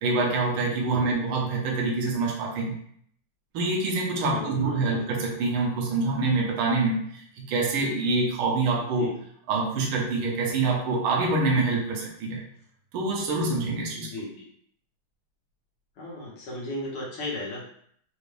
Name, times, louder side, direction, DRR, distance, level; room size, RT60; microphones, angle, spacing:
voice 1, 0.0-2.8 3.5-9.1 9.5-12.4 12.9-14.1, right 3 dB, 90° right, -2 dB, 1.1 m, -26 dB
voice 2, 4.2-5.1 8.8-9.1 13.4-14.4 16.0-17.7, left 2 dB, 60° left, -5 dB, 1.8 m, -36 dB
4.7 x 2.5 x 3.3 m, 0.63 s
omnidirectional pair, 3.3 m